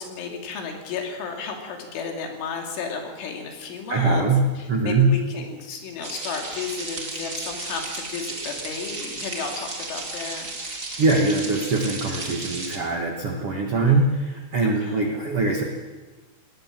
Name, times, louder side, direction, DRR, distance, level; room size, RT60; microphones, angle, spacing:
voice 1, 0.0-4.3 4.6-10.5 13.9-14.0 14.6-15.0, left 5 dB, 75° left, 2 dB, 4.9 m, -33 dB
voice 2, 3.9-4.4 4.7-5.1 11.0-15.6, right 3 dB, 70° right, 1 dB, 1.3 m, -22 dB
sound 1, 6.0-12.8, right 2 dB, 35° right, 1.3 m, -34 dB
19.0 x 18.5 x 7.5 m, 1.3 s
omnidirectional pair, 5.7 m